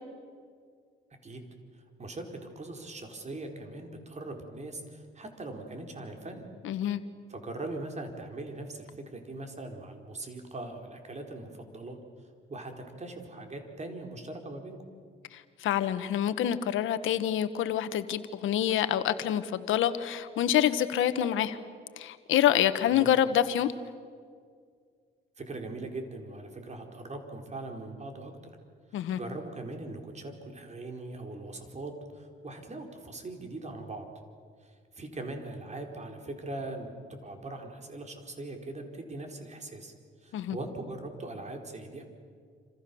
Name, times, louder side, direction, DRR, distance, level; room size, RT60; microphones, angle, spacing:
voice 1, 1.7-6.4 7.3-12.0 12.5-12.7 13.0-14.8 22.9-23.1 25.4-28.5 28.9-34.1 34.6-39.9 40.2-42.0, right 2 dB, 35° right, 4 dB, 4.5 m, -41 dB
voice 2, 6.6-7.0 15.3-21.6 22.0-23.7 28.9-29.2 40.3-40.6, left 11 dB, 80° left, 11 dB, 1.4 m, -27 dB
28.0 x 27.0 x 7.1 m, 2.1 s
cardioid pair, 90°, 20 cm